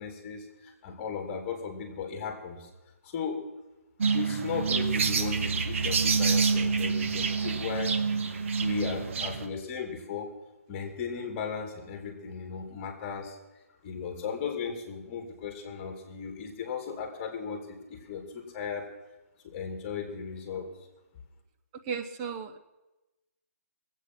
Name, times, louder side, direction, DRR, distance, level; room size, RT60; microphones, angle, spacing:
voice 1, 0.0-2.7 3.0-3.4 4.1-7.9 8.6-10.3 10.7-13.4 13.8-18.9 19.4-20.7, left 6 dB, 30° left, 5 dB, 2.5 m, -36 dB
sound 1, 4.0-9.5, right 5 dB, 55° right, 1.2 m, -27 dB
voice 2, 21.9-22.6, right 6 dB, 25° right, 6 dB, 1.0 m, -34 dB
20.0 x 8.3 x 6.1 m, 1.0 s
hypercardioid pair, 150°, 8 cm